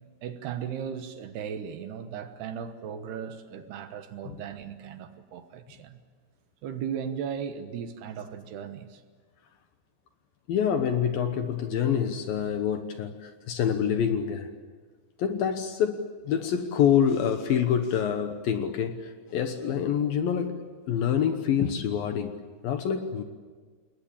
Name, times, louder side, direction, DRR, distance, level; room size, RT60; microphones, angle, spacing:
voice 1, 0.2-6.0 6.6-9.0, right 8 dB, 70° right, 8 dB, 3.1 m, -36 dB
voice 2, 10.5-14.5 15.2-22.3 22.6-23.2, left 8 dB, 70° left, 7 dB, 2.5 m, -26 dB
28.0 x 21.5 x 8.7 m, 1.5 s
omnidirectional pair, 5.2 m